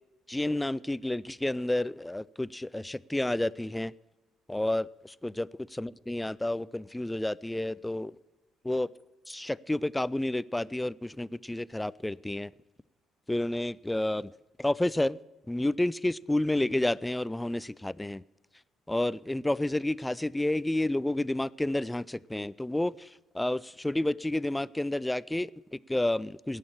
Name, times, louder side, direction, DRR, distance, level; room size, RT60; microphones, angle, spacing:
voice 1, 0.3-3.9 4.5-8.2 8.6-8.9 9.3-12.5 13.3-14.3 14.6-15.2 15.5-18.2 18.9-26.6, left 1 dB, 10° left, 21 dB, 0.3 m, -30 dB
17.5 x 6.5 x 7.3 m, 1.1 s
figure-of-eight pair, 50°, 0 cm